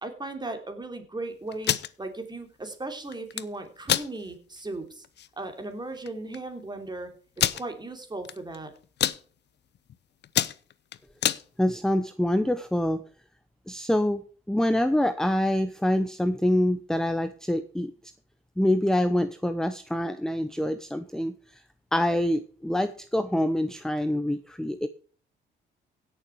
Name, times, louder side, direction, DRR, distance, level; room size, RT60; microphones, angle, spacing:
voice 1, 0.0-5.0 5.4-7.1 7.4-8.7, right 2 dB, 20° right, 6 dB, 3.1 m, -37 dB
sound 1, 1.5-1.9 3.1-3.4 3.8-4.1 4.6-4.7 5.0-5.3 6.1-6.2 6.3-6.4 7.4-7.6 8.2-8.6 8.8-9.2 9.7-9.9 10.2-11.4, left 10 dB, 60° left, 0.8 m, -26 dB
voice 2, 11.6-13.0 13.7-14.2 14.5-17.9 18.6-21.6 21.9-24.9, left 1 dB, 5° left, 11 dB, 0.8 m, -25 dB
16.5 x 7.0 x 4.7 m, 0.43 s
cardioid pair, 90°, 20 cm